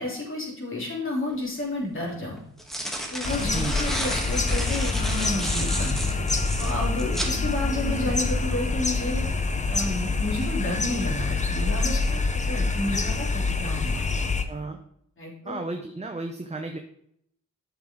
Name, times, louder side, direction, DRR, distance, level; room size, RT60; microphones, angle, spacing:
voice 1, 0.0-2.4 3.1-6.2 6.6-9.3 9.7-12.2 12.5-14.2 15.2-15.6, left 1 dB, 40° left, -3 dB, 3.2 m, -31 dB
sound 1, 1.3-1.4 2.4-7.4, equal, ahead, 1.5 m, -32 dB
sound 2, 3.2-14.4, left 3 dB, 25° left, 0.7 m, -26 dB
sound 3, 4.2-5.8 6.1-10.4, right 1 dB, 45° right, 2.6 m, -41 dB
voice 2, 14.5-14.8 15.4-16.8, right 3 dB, 20° right, 4 dB, 0.8 m, -33 dB
8.1 x 6.2 x 3.7 m, 0.71 s
cardioid pair, 75°, 31 cm